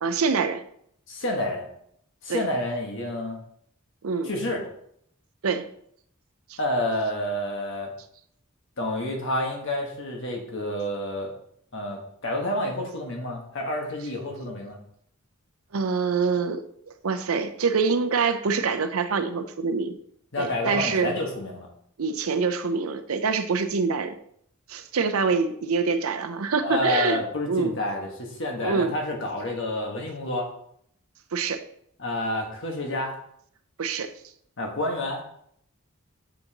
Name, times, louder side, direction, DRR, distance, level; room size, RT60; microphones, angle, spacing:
voice 1, 0.0-0.6 2.3-2.4 4.0-4.3 5.4-5.7 6.5-6.6 15.7-16.6 17.0-20.0 20.4-21.1 22.0-24.1 24.7-27.2 27.5-27.8 28.6-28.9 31.3-31.6 33.8-34.1, right 5 dB, 80° right, 10 dB, 0.6 m, -25 dB
voice 2, 1.1-1.7 2.2-3.4 4.2-4.6 6.6-7.9 8.8-11.3 11.7-14.8 20.3-21.7 26.6-30.5 32.0-33.2 34.6-35.2, left 1 dB, 60° left, 1 dB, 1.4 m, -29 dB
7.2 x 5.2 x 2.9 m, 0.69 s
head